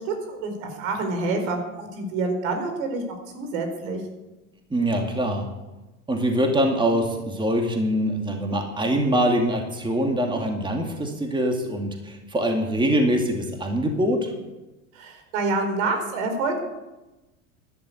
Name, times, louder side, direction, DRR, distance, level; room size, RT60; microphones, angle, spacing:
voice 1, 0.0-4.0 14.9-16.6, right 3 dB, 70° right, 5 dB, 4.6 m, -27 dB
voice 2, 4.7-5.4 6.1-14.3, equal, 10° right, 2 dB, 2.5 m, -23 dB
12.0 x 11.5 x 8.4 m, 1.1 s
supercardioid pair, 105°, 42 cm